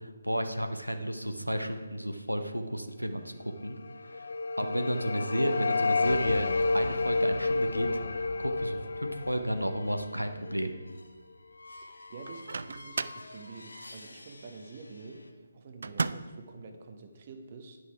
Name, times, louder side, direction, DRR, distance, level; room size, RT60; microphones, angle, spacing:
voice 1, 0.0-3.3 3.6-3.8 4.1-4.3 4.6-7.9 8.4-10.8, equal, 90° right, 6 dB, 0.8 m, -32 dB
sound 1, 3.8-10.8, left 3 dB, 55° left, 0.3 m, -30 dB
sound 2, 7.6-15.3, left 2 dB, 70° left, 1.0 m, -52 dB
voice 2, 11.8-17.8, right 3 dB, 35° right, 5 dB, 0.9 m, -47 dB
Microwave oven, 12.2-13.3 15.8-16.4, right 4 dB, 55° right, 0.3 m, -34 dB
9.5 x 6.3 x 4.7 m, 1.4 s
figure-of-eight pair, 145°, 0 cm